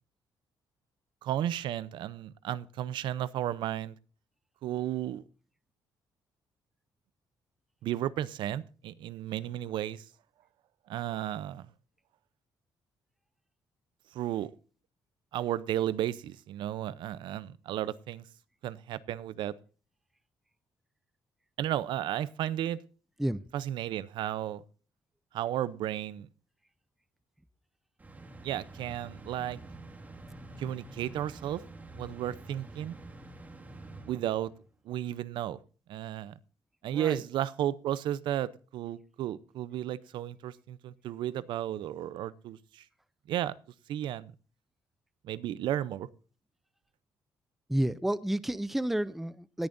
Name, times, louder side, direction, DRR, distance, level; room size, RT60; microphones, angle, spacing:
voice 1, 1.2-4.0 4.6-5.2 7.8-10.0 10.9-11.7 14.1-14.5 15.3-18.3 18.6-19.5 21.6-22.8 23.5-24.6 25.3-26.3 28.4-29.6 30.6-31.6 32.0-33.0 34.1-34.5 34.9-35.6 35.9-36.3 36.8-42.8 43.3-43.5 43.9-44.3 45.2-46.1, right 12 dB, 70° right, 18 dB, 0.6 m, -33 dB
sound 1, 28.0-34.7, right 2 dB, 20° right, 1.9 m, -47 dB
voice 2, 47.7-49.7, right 1 dB, 5° right, 17 dB, 0.5 m, -30 dB
18.5 x 10.5 x 2.6 m, 0.37 s
cardioid pair, 135°, 8 cm